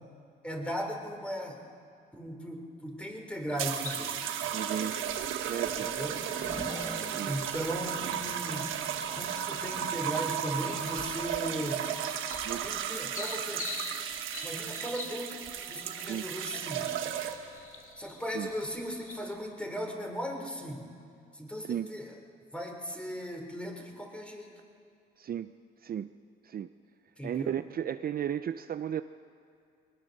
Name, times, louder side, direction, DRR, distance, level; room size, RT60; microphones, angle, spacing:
voice 1, 0.4-1.6 2.1-4.2 5.8-6.2 7.3-8.7 9.1-11.8 12.6-13.6 14.4-16.9 18.0-21.0 21.3-22.1 22.5-24.5 27.2-27.5, equal, 5° left, 2 dB, 3.8 m, -37 dB
Race car auto racing / Accelerating revving vroom, 3.1-19.3, left 2 dB, 25° left, 1.9 m, -51 dB
sound 1, 3.6-17.6 18.5-18.8, right 9 dB, 85° right, 1.4 m, -34 dB
sound 2, 3.8-19.3, left 3 dB, 40° left, 2.5 m, -48 dB
voice 2, 4.5-5.0 5.5-5.9 7.0-7.3 8.0-8.2 12.4-12.7 16.0-16.3 18.3-18.5 21.6-21.9 25.2-25.5 25.8-26.1 26.4-26.7 27.2-29.0, right 9 dB, 50° right, 11 dB, 0.6 m, -34 dB
22.0 x 19.5 x 6.7 m, 2.5 s
cardioid pair, 90°, 20 cm